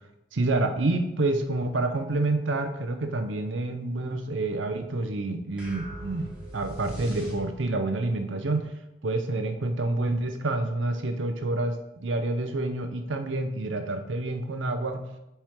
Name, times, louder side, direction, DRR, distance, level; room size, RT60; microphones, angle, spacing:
voice 1, 0.3-8.7 9.0-15.0, right 2 dB, 85° right, 7 dB, 0.7 m, -28 dB
sound 1, 5.6-7.9, equal, 5° right, 1.8 m, -40 dB
7.3 x 4.5 x 3.6 m, 0.91 s
head